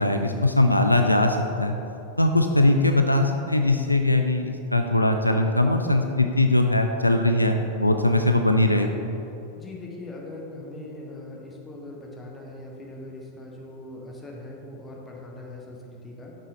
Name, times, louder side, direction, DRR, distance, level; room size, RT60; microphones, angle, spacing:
voice 1, 0.0-1.8 2.2-8.9, left 2 dB, 85° left, 5 dB, 0.3 m, -21 dB
voice 2, 9.5-16.3, left 2 dB, 15° left, -1 dB, 1.2 m, -40 dB
6.2 x 6.2 x 3.9 m, 2.9 s
figure-of-eight pair, 90°, 0 cm